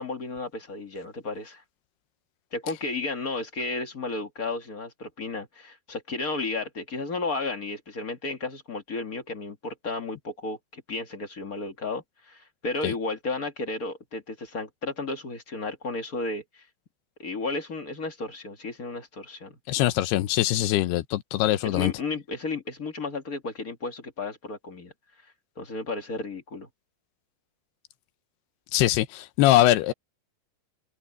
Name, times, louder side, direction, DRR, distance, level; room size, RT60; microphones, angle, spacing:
voice 1, 0.0-1.6 2.5-16.6 17.2-19.6 21.6-24.9 25.5-26.7, left 3 dB, 40° left, 1.2 m, -33 dB
voice 2, 19.7-21.9 28.7-29.9, left 14 dB, 85° left, 2.9 m, -22 dB
omnidirectional pair, 4.6 m